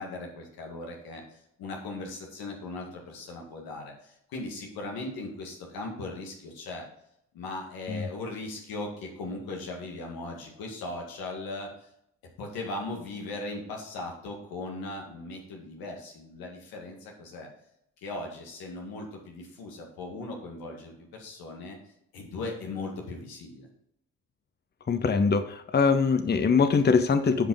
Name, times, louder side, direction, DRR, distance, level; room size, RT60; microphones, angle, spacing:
voice 1, 0.0-6.9 7.3-11.9 12.4-17.5 18.0-21.8 22.1-23.7, left 2 dB, 85° left, 1 dB, 1.9 m, -38 dB
voice 2, 24.9-27.5, left 5 dB, 30° left, 9 dB, 0.7 m, -23 dB
9.1 x 5.0 x 3.9 m, 0.75 s
supercardioid pair, 50°, 35 cm